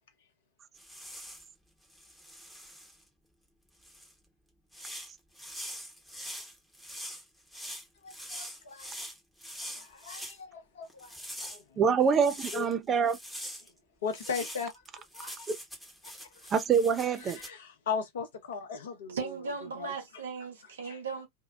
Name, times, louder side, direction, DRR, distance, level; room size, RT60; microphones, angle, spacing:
sound 1, 0.8-1.5 1.9-3.0 3.8-4.1 4.7-10.4 10.9-12.7 13.1-13.7 14.1-17.5, equal, ahead, 0.8 m, -43 dB
voice 1, 8.0-8.9 9.7-11.1 11.4-11.8 12.5-12.7 14.0-15.5 16.2-16.3 17.2-19.3 19.8-19.9 20.8-21.0, left 6 dB, 60° left, 0.7 m, -38 dB
voice 2, 11.8-13.2 15.5-15.6 16.5-17.4, right 6 dB, 25° right, 0.4 m, -25 dB
voice 3, 19.1-21.3, right 5 dB, 65° right, 0.9 m, -37 dB
2.6 x 2.1 x 2.4 m
figure-of-eight pair, 90°, 0 cm